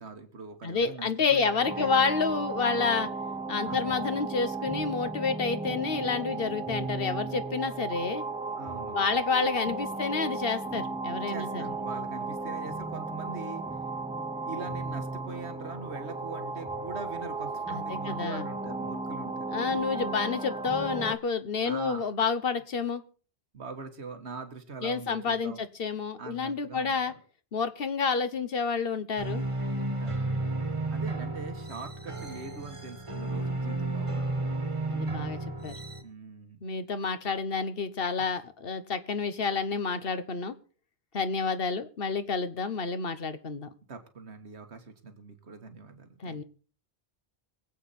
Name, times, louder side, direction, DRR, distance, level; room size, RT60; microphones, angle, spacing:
voice 1, 0.0-2.0 3.6-3.9 8.6-9.0 11.3-13.8 14.5-19.5 19.8-19.9 21.6-22.0 23.5-25.6 26.2-27.2 29.7-30.4 30.9-34.5 36.0-36.6 43.9-46.4, right 4 dB, 85° right, 7 dB, 1.8 m, -42 dB
voice 2, 0.6-3.1 3.5-8.2 8.9-11.6 17.7-18.4 19.5-23.0 24.8-27.1 27.5-29.4 34.9-35.7 36.6-40.5 41.1-43.7 46.2-46.4, left 5 dB, 60° left, 11 dB, 1.2 m, -29 dB
sound 1, 1.6-21.2, right 3 dB, 5° right, 1.0 m, -35 dB
sound 2, 29.2-36.0, right 2 dB, 30° right, 1.5 m, -32 dB
23.5 x 8.3 x 4.2 m, 0.39 s
omnidirectional pair, 1.1 m